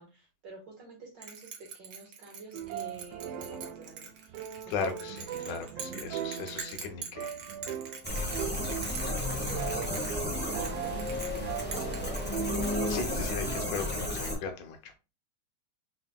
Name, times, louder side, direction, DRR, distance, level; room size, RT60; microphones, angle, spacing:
voice 1, 0.0-5.2 5.8-6.1 8.9-12.3, right 4 dB, 45° right, 1.9 m, -48 dB
Bell, 1.2-12.9, right 6 dB, 60° right, 1.6 m, -44 dB
sound 1, 2.5-13.8, right 9 dB, 90° right, 1.3 m, -39 dB
voice 2, 4.7-7.4 12.9-15.0, left 5 dB, 90° left, 2.4 m, -37 dB
sound 2, 8.0-14.3, left 2 dB, 15° left, 0.4 m, -33 dB
5.0 x 4.2 x 2.3 m
omnidirectional pair, 3.4 m